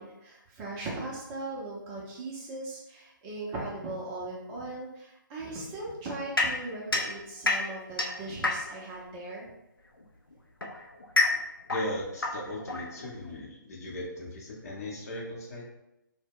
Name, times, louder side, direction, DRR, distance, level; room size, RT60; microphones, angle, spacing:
voice 1, 0.0-9.5, right 2 dB, 20° right, -5 dB, 0.5 m, -39 dB
sound 1, 6.4-9.0 10.0-13.4, left 2 dB, 90° left, 0.5 m, -30 dB
voice 2, 11.7-15.7, left 1 dB, 45° left, -3 dB, 0.7 m, -37 dB
2.1 x 2.1 x 3.5 m, 0.89 s
figure-of-eight pair, 135°, 11 cm